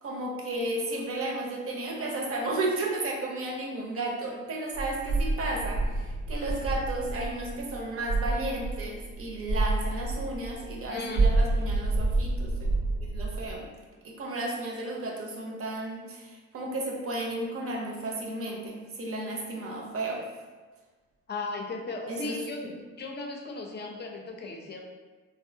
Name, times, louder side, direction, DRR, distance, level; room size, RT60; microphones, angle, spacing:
voice 1, 0.0-12.7 13.1-13.7 14.0-20.3 22.1-22.7, right 2 dB, 50° right, -1 dB, 0.7 m, -33 dB
sound 1, 4.7-10.9 11.1-13.6, right 2 dB, 90° right, 1.0 m, -28 dB
voice 2, 10.9-11.3 21.3-22.6 23.0-24.8, left 3 dB, 35° left, 1 dB, 0.5 m, -36 dB
3.3 x 2.1 x 2.7 m, 1.3 s
cardioid pair, 90°, 30 cm